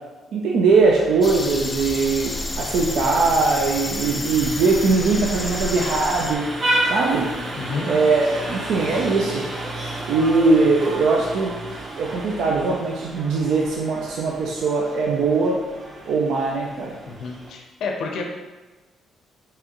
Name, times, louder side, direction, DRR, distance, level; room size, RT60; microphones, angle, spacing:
voice 1, 0.3-6.4 6.9-7.3 7.8-9.4 10.1-11.5 11.9-15.6 16.1-16.9, right 4 dB, 80° right, -1 dB, 0.5 m, -20 dB
Vehicle horn car horn honking, 0.7-17.5, right 1 dB, 50° right, 1.1 m, -32 dB
sound 1, 1.2-6.4, left 2 dB, 25° left, 0.5 m, -30 dB
voice 2, 7.6-7.9 17.1-18.2, left 4 dB, 75° left, 1 dB, 0.7 m, -29 dB
4.7 x 3.7 x 3.0 m, 1.2 s
cardioid pair, 90°, 0 cm